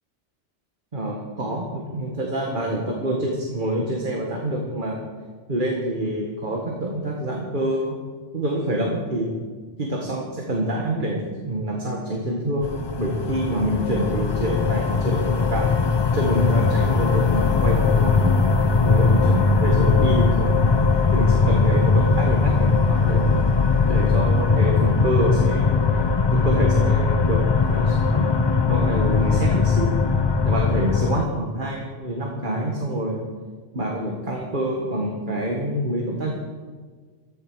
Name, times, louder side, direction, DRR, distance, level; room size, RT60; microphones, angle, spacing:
voice 1, 0.9-5.0 5.5-8.0 8.3-9.4 9.8-15.7 16.1-18.4 18.8-20.6 21.1-23.3 23.9-26.0 26.3-27.4 27.7-28.3 28.7-29.9 30.4-33.2 33.7-36.3, right 1 dB, 45° right, 0 dB, 1.9 m, -26 dB
sound 1, 12.6-31.2, left 4 dB, 40° left, 0.3 m, -20 dB
15.0 x 12.0 x 6.3 m, 1.5 s
omnidirectional pair, 1.2 m